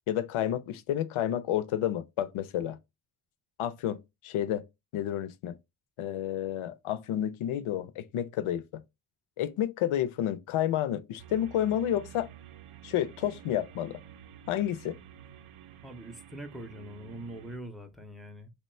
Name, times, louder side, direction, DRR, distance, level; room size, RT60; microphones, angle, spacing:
voice 1, 0.1-2.8 3.6-4.6 4.9-5.6 6.0-8.8 9.4-12.3 12.8-14.0 14.5-15.0, left 11 dB, 90° left, 0.5 m, -30 dB
sound 1, 11.2-17.6, right 10 dB, 80° right, 0.6 m, -50 dB
voice 2, 15.8-18.5, right 1 dB, ahead, 0.3 m, -43 dB
2.9 x 2.2 x 4.1 m
wide cardioid pair, 160°, 48 cm